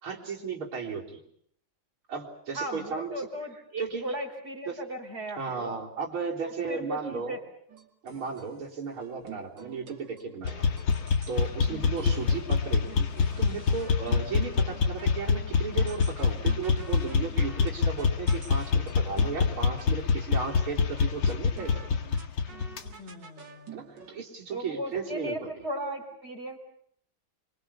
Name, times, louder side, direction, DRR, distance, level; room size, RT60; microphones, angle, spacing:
voice 1, 0.0-1.2 2.1-3.1 3.8-4.0 4.7-4.8 5.4-7.4 8.0-10.7 11.3-13.1 13.4-21.8 23.7-25.5, right 5 dB, 85° right, -4 dB, 4.7 m, -35 dB
voice 2, 2.5-5.8 6.4-7.4 11.7-12.0 23.0-23.7 24.5-26.6, equal, 30° right, 4 dB, 4.2 m, -37 dB
sound 1, 7.7-15.1 15.9-19.9 20.4-20.7 21.0-24.2, right 5 dB, 60° right, 3.2 m, -49 dB
sound 2, 10.4-22.9, left 5 dB, 65° left, 2.3 m, -26 dB
27.0 x 24.0 x 7.1 m, 0.66 s
omnidirectional pair, 2.3 m